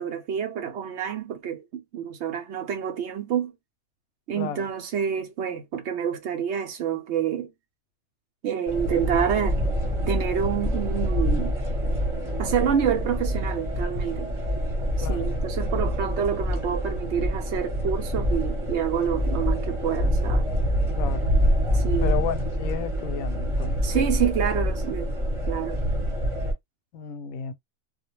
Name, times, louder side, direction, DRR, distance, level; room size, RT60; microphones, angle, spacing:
voice 1, 0.0-3.5 4.3-7.5 8.4-9.6 10.1-11.6 12.4-14.3 15.0-20.5 21.7-22.1 23.8-25.1 25.5-25.8, right 8 dB, 65° right, 0.7 m, -28 dB
voice 2, 4.3-4.7 15.0-15.3 21.0-21.3 22.0-23.8 26.9-27.5, left 7 dB, 90° left, 1.0 m, -32 dB
sound 1, 8.7-26.5, equal, 25° right, 0.8 m, -26 dB
2.3 x 2.1 x 2.9 m
omnidirectional pair, 1.4 m